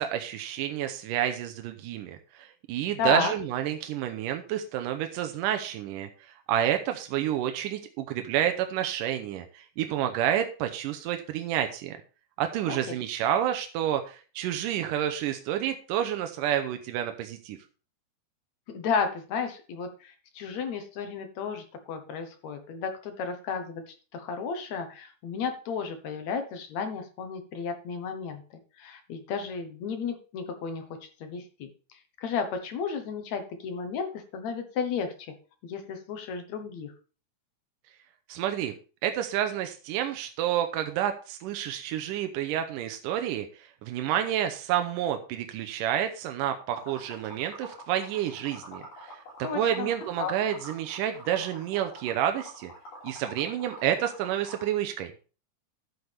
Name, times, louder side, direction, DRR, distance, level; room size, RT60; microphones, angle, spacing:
voice 1, 0.0-6.1 6.5-12.0 12.4-17.6 38.3-38.8 39.0-52.7 53.0-55.1, right 10 dB, 90° right, 6 dB, 2.4 m, -29 dB
voice 2, 3.0-3.3 12.7-13.0 18.7-28.4 28.8-30.9 31.2-35.3 35.6-36.9 49.4-49.9 50.2-50.3, left 5 dB, 65° left, 7 dB, 2.3 m, -33 dB
Liquid, 46.7-54.7, equal, 90° left, 5.2 m, -46 dB
11.5 x 8.0 x 3.4 m, 0.36 s
omnidirectional pair, 3.7 m